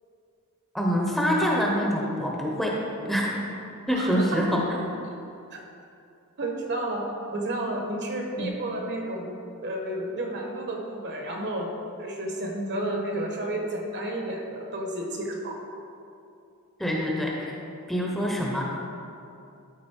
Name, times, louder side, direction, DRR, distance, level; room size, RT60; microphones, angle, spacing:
voice 1, 0.7-2.8 3.0-3.3 3.9-4.6 8.4-8.5 16.8-17.6 17.9-18.6, equal, ahead, -3 dB, 0.9 m, -25 dB
voice 2, 3.9-4.8 6.4-9.3 9.6-11.7 12.0-15.5, right 1 dB, 50° right, 1 dB, 1.2 m, -31 dB
12.5 x 4.2 x 4.5 m, 2.6 s
head